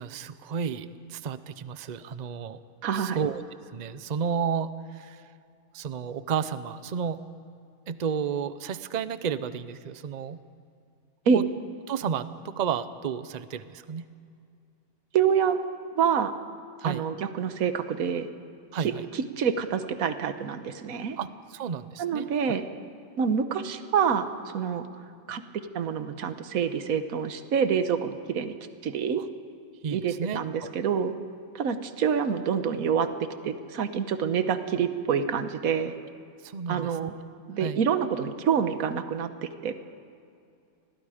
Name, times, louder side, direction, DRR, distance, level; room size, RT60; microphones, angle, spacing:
voice 1, 0.0-2.6 2.9-3.4 3.7-5.2 5.7-7.2 7.9-10.4 11.3-11.5 11.9-14.1 16.8-17.0 18.7-19.0 21.2-22.3 29.2-29.3 29.8-30.7 36.4-37.0 37.6-37.8, right 7 dB, 45° right, 13 dB, 0.6 m, -32 dB
voice 2, 2.8-3.2 11.3-11.4 15.1-15.6 16.0-16.3 16.8-18.3 19.1-21.2 22.0-22.7 23.2-24.3 24.5-24.8 25.3-25.4 25.7-28.5 28.8-29.2 29.9-31.1 31.5-33.1 33.4-35.9 36.7-37.1 37.5-39.3 39.6-39.7, right 7 dB, 70° right, 9 dB, 1.5 m, -26 dB
29.5 x 21.0 x 5.0 m, 2.4 s
omnidirectional pair, 1.6 m